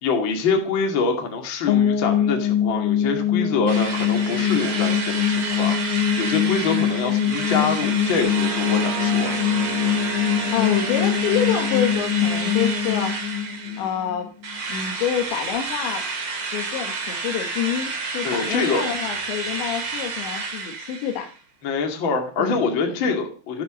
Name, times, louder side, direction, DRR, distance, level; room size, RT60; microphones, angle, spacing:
voice 1, 0.0-5.8 6.2-9.4 13.6-13.8 18.2-18.9 21.6-23.6, left 4 dB, 35° left, 3 dB, 2.3 m, -25 dB
sound 1, 1.7-14.6, left 9 dB, 65° left, 3.1 m, -23 dB
Drill, 3.7-14.0 14.4-21.3, right 4 dB, 35° right, 2.5 m, -30 dB
sound 2, 8.0-14.2 14.6-14.7, right 10 dB, 70° right, 3.4 m, -37 dB
voice 2, 10.5-13.2 13.8-14.3 14.7-16.1 16.5-21.3 22.4-23.0, left 9 dB, 90° left, 3 dB, 3.8 m, -27 dB
16.5 x 10.0 x 6.4 m, 0.40 s
omnidirectional pair, 5.0 m